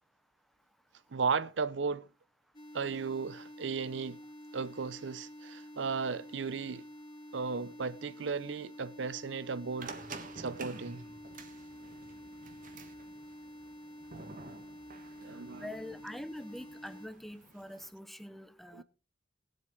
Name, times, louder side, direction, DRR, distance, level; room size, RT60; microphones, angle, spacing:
voice 1, 1.1-2.1 2.7-4.2 4.5-6.8 7.3-9.9 10.3-11.0 15.2-15.7 18.7-18.8, right 5 dB, 70° right, 0.6 m, -35 dB
sound 1, 2.5-17.1, left 1 dB, 25° left, 2.9 m, -49 dB
sound 2, 9.8-17.9, right 3 dB, 45° right, 1.6 m, -50 dB
voice 2, 15.5-18.8, left 1 dB, ahead, 0.9 m, -44 dB
19.5 x 7.8 x 3.8 m
head